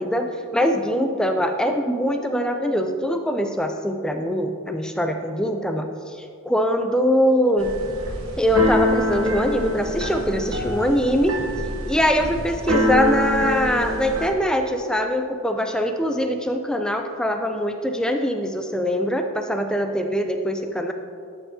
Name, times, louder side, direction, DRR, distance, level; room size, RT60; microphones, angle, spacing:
voice 1, 0.0-7.7 8.4-11.4 11.9-20.9, equal, 5° left, 5 dB, 0.3 m, -23 dB
Keyboard (musical), 7.6-14.3, left 1 dB, 75° right, 1.0 m, -25 dB
11.5 x 5.6 x 2.8 m, 2.3 s
head